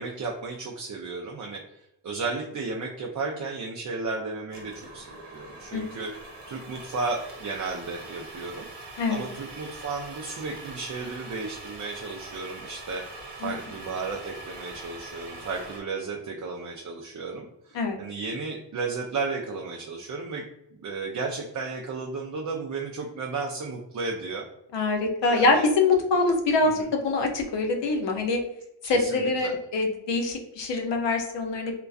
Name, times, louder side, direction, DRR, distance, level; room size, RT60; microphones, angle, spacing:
voice 1, 0.0-1.6 2.0-6.1 6.5-8.7 9.1-20.4 20.8-24.5 25.2-25.6 26.8-26.9 28.8-29.5, right 4 dB, 45° right, -1 dB, 0.4 m, -34 dB
sound 1, 4.5-15.8, right 2 dB, 70° right, 0.7 m, -43 dB
voice 2, 24.7-28.4 28.8-31.7, left 3 dB, 75° left, 3 dB, 0.6 m, -24 dB
2.4 x 2.2 x 2.3 m, 0.82 s
cardioid pair, 50°, 43 cm